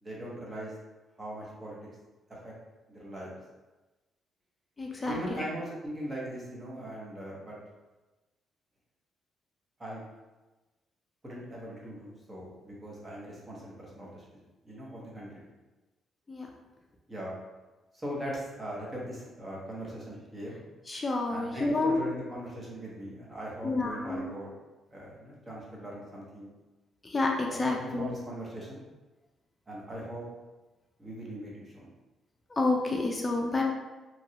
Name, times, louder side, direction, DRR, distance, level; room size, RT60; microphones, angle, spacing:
voice 1, 0.0-0.7 1.2-1.8 2.3-2.5 2.9-3.3 5.1-7.6 9.8-10.1 11.2-15.5 17.1-17.3 17.9-20.6 21.3-24.5 24.9-26.5 27.4-28.8 29.7-30.2 31.0-31.9, equal, 20° right, -5 dB, 1.1 m, -40 dB
voice 2, 4.8-5.4 16.3-16.5 20.9-22.0 23.6-24.3 27.0-28.1 32.5-33.6, left 2 dB, 25° left, 0 dB, 0.4 m, -29 dB
3.0 x 2.4 x 2.8 m, 1.1 s
cardioid pair, 90°, 0 cm